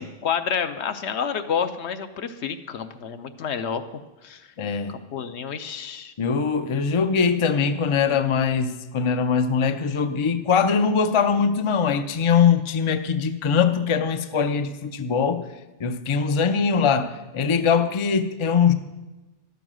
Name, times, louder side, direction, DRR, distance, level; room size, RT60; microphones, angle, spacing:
voice 1, 0.0-3.8 4.2-4.5 4.9-6.1, left 7 dB, 70° left, 9 dB, 0.9 m, -29 dB
voice 2, 4.6-4.9 6.2-15.5 15.8-18.7, left 6 dB, 45° left, 9 dB, 0.4 m, -22 dB
12.0 x 7.1 x 6.1 m, 1.1 s
omnidirectional pair, 1.3 m